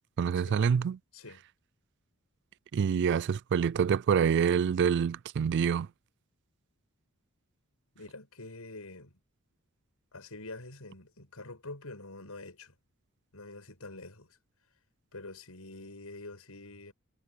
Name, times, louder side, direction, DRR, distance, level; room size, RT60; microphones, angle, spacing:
voice 1, 0.2-1.0 2.7-5.9, right 7 dB, 55° right, 0.3 m, -26 dB
voice 2, 1.1-1.5 7.9-9.2 10.1-12.7 13.3-14.4 15.1-16.9, left 2 dB, 75° left, 6.5 m, -46 dB
head